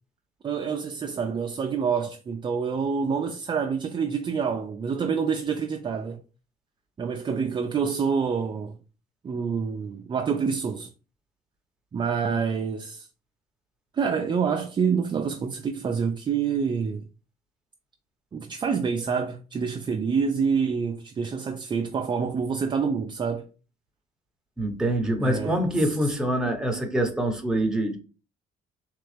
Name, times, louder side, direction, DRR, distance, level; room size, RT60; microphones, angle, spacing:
voice 1, 0.4-6.2 7.0-8.8 9.2-10.9 11.9-13.1 13.9-17.1 18.3-23.4 25.2-26.2, right 6 dB, 25° right, 0.4 m, -27 dB
voice 2, 24.6-28.0, right 1 dB, 5° right, 1.1 m, -25 dB
3.8 x 3.3 x 3.3 m
cardioid pair, 110°, 17 cm